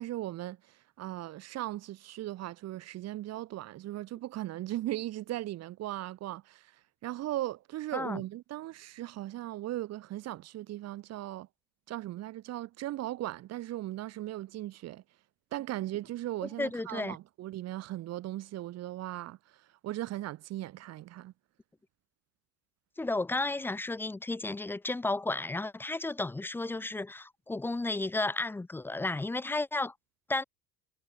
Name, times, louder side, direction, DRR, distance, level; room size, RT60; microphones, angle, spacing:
voice 1, 0.0-11.5 11.9-15.0 15.5-21.3, right 15 dB, 40° right, 7.6 m, -38 dB
voice 2, 16.6-17.2 23.0-29.9 30.3-30.4, left 2 dB, 5° left, 0.9 m, -33 dB
cardioid pair, 170°, 38 cm